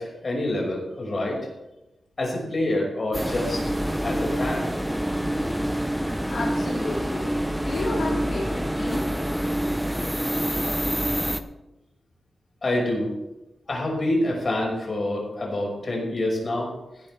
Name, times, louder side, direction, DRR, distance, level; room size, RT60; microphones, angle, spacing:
voice 1, 0.0-1.4 2.2-3.6 4.0-4.7 12.6-13.1 13.7-16.7, left 1 dB, 45° left, -1 dB, 5.7 m, -26 dB
sound 1, 3.1-11.4, equal, 5° right, 0.8 m, -26 dB
voice 2, 6.3-7.4 7.6-9.0, left 2 dB, 80° left, -5 dB, 3.1 m, -31 dB
16.0 x 11.5 x 3.4 m, 0.97 s
cardioid pair, 80°, 0 cm